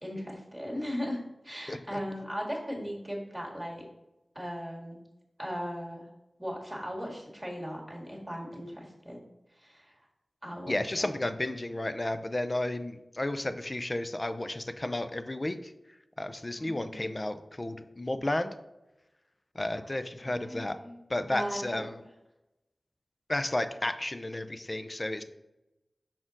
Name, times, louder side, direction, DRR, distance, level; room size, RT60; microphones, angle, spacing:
voice 1, 0.0-3.9 4.4-5.0 5.4-6.1 6.4-9.2 9.6-9.9 10.4-10.7 11.0-11.1 16.6-17.1 20.2-20.9 21.2-21.8, equal, 5° right, -2 dB, 1.8 m, -38 dB
voice 2, 1.7-2.0 10.7-18.5 19.5-20.8 21.1-22.0 23.3-25.2, left 1 dB, 30° left, 10 dB, 0.4 m, -33 dB
5.9 x 4.3 x 3.8 m, 0.96 s
wide cardioid pair, 60°, 0 cm